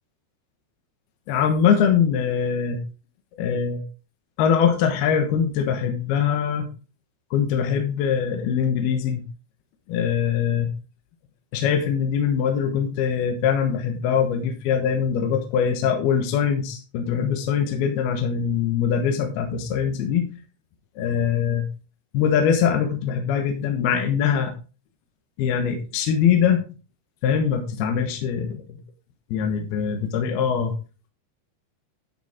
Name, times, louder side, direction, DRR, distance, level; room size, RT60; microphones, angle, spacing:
voice 1, 1.3-2.8 3.4-3.8 4.4-6.7 7.3-9.2 9.9-10.7 11.5-20.3 21.0-21.7 22.1-24.5 25.4-26.6 27.2-28.6 29.3-30.7, left 7 dB, 75° left, 4 dB, 3.1 m, -22 dB
12.5 x 6.9 x 3.6 m, 0.34 s
omnidirectional pair, 4.7 m